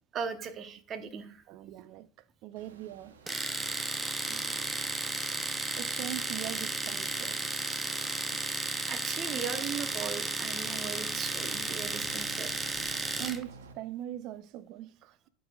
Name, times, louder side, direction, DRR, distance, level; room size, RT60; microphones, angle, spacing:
voice 1, 0.1-1.4 8.5-12.6, right 6 dB, 40° right, 0.9 m, -39 dB
voice 2, 1.5-2.1 2.4-3.1 4.2-4.7 5.7-7.4 13.2-15.3, right 13 dB, 55° right, 0.4 m, -41 dB
sound 1, 2.6-13.7, right 5 dB, 85° right, 0.8 m, -54 dB
Domestic sounds home sounds, 3.3-13.4, right 2 dB, 15° right, 0.6 m, -33 dB
10.5 x 4.0 x 2.3 m
hypercardioid pair, 90°, 0 cm